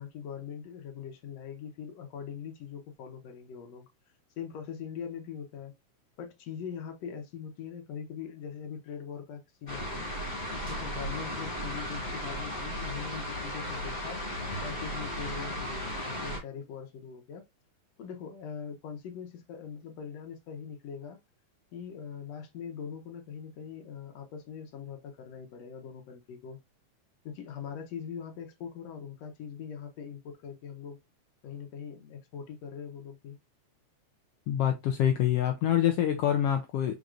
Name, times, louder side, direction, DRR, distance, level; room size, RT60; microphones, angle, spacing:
voice 1, 0.0-3.9 4.4-5.7 6.2-10.1 10.6-14.2 14.6-17.4 18.0-21.2 21.7-26.6 27.2-31.0 31.4-33.4, left 7 dB, 70° left, 1.8 m, -42 dB
sound 1, 9.7-16.4, equal, 20° left, 1.5 m, -35 dB
voice 2, 34.5-37.0, left 10 dB, 85° left, 1.3 m, -26 dB
5.1 x 4.1 x 2.4 m
omnidirectional pair, 3.3 m